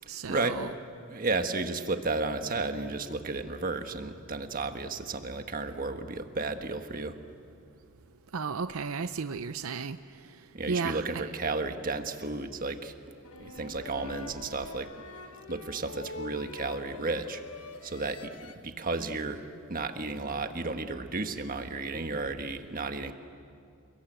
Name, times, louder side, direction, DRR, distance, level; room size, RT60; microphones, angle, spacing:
voice 1, 0.1-0.7 8.3-10.0 10.7-11.3, right 5 dB, 75° right, 11 dB, 0.6 m, -33 dB
voice 2, 1.1-7.2 10.5-12.9 13.4-14.9 15.5-17.4 17.8-18.3 18.6-19.4 19.7-23.1, right 3 dB, 40° right, 7 dB, 1.5 m, -33 dB
sound 1, 13.2-18.5, left 3 dB, 80° left, 1.2 m, -44 dB
29.5 x 22.0 x 9.0 m, 2.4 s
head